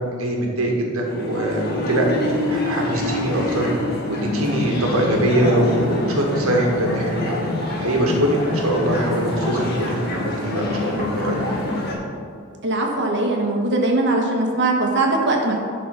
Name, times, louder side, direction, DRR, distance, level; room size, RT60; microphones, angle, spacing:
voice 1, 0.0-3.7 4.1-7.4 7.8-11.4, right 1 dB, 75° right, 0 dB, 1.6 m, -22 dB
sound 1, 1.0-11.9, left 1 dB, 50° left, 1.5 m, -26 dB
voice 2, 12.6-15.6, right 2 dB, 55° right, 1 dB, 1.3 m, -20 dB
11.0 x 4.2 x 5.7 m, 2.3 s
head